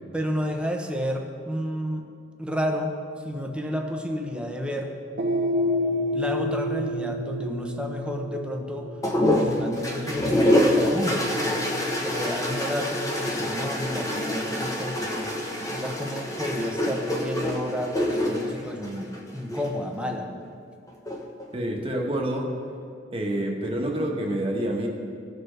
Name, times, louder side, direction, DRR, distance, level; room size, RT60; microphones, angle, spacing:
voice 1, 0.1-3.0 3.2-4.9 6.1-9.0 9.2-11.7 12.0-15.4 15.7-20.3, equal, 5° right, 2 dB, 0.8 m, -31 dB
sound 1, 5.1-13.6, left 1 dB, 90° right, 1.2 m, -31 dB
sound 2, 9.0-19.7 20.9-21.5, left 1 dB, 20° left, 1.0 m, -26 dB
voice 2, 21.5-22.5 23.1-24.9, right 1 dB, 30° right, 0 dB, 1.2 m, -27 dB
16.5 x 6.6 x 3.3 m, 2.3 s
head